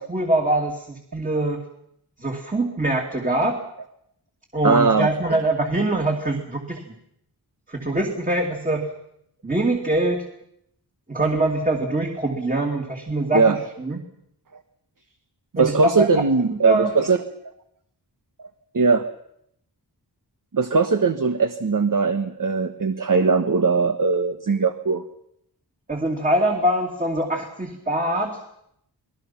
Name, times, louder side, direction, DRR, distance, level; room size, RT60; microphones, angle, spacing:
voice 1, 0.0-1.6 2.2-3.6 4.5-6.9 7.7-8.9 9.4-10.3 11.1-14.0 15.6-16.1 16.5-16.9 25.9-28.4, right 1 dB, 20° right, 1 dB, 2.8 m, -23 dB
voice 2, 4.6-5.1 13.3-13.6 15.5-17.2 18.7-19.0 20.5-25.0, right 4 dB, 50° right, 7 dB, 1.3 m, -20 dB
29.5 x 20.5 x 6.0 m, 0.74 s
wide cardioid pair, 90°, 40 cm